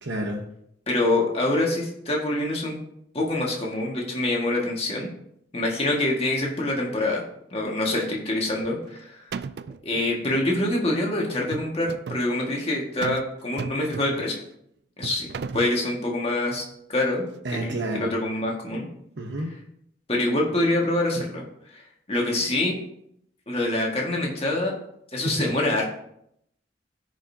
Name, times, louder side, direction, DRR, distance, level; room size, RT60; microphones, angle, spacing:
voice 1, 0.0-0.4 17.4-18.2 19.2-19.6 25.1-25.5, right 1 dB, 80° right, 1 dB, 1.0 m, -30 dB
voice 2, 0.9-2.8 3.1-5.1 5.5-7.2 7.5-9.2 9.8-14.4 15.0-16.6 16.9-17.3 17.5-18.9 20.1-22.7 23.5-24.7 25.1-25.8, left 1 dB, 35° left, -2 dB, 1.7 m, -25 dB
sound 1, 8.6-9.0 9.3-9.9 11.3-12.3 13.0-13.3 13.6-14.3 15.0-15.8, right 5 dB, 60° right, 0.4 m, -34 dB
14.5 x 5.2 x 2.8 m, 0.74 s
head